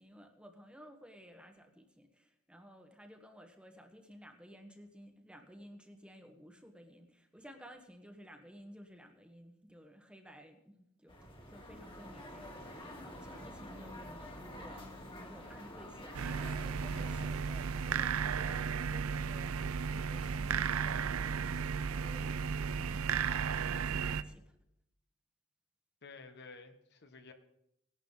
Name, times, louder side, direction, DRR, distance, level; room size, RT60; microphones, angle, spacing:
voice 1, 0.0-24.5, equal, 5° right, 5 dB, 1.3 m, -55 dB
sound 1, 11.1-17.3, left 1 dB, 25° left, 2.2 m, -48 dB
sound 2, 16.1-24.2, right 6 dB, 85° right, 0.6 m, -34 dB
voice 2, 26.0-27.3, left 4 dB, 55° left, 7 dB, 1.2 m, -52 dB
18.5 x 11.5 x 4.0 m, 0.82 s
head